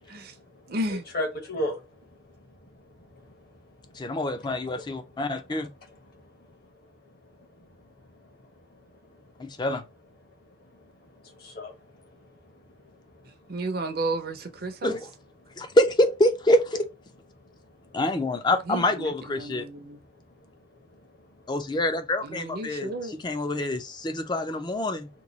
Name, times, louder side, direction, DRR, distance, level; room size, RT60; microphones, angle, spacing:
voice 1, 0.0-5.1 5.6-6.6 7.1-9.6 10.4-13.7 15.5-15.8 17.4-18.0 20.1-21.5 22.8-23.5, left 1 dB, 50° left, 1.0 m, -41 dB
voice 2, 0.7-1.0 13.5-15.0 18.7-20.0 22.2-23.1, right 2 dB, 50° right, 0.6 m, -32 dB
voice 3, 4.0-5.7 9.4-9.8 14.8-15.1 15.6-16.9 17.9-19.6 21.5-25.1, left 1 dB, 20° left, 0.4 m, -26 dB
3.0 x 2.3 x 3.9 m
head